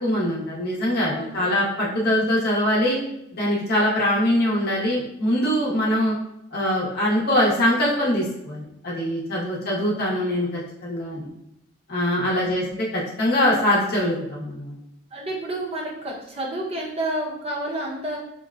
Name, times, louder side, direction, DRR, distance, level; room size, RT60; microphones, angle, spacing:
voice 1, 0.0-3.0 3.3-6.1 6.5-11.3 11.9-14.8, left 1 dB, 55° left, -5 dB, 0.8 m, -23 dB
voice 2, 1.0-1.7 9.5-10.2 12.3-12.8 15.1-18.2, right 1 dB, 30° right, -3 dB, 0.8 m, -31 dB
5.3 x 2.1 x 2.4 m, 0.82 s
head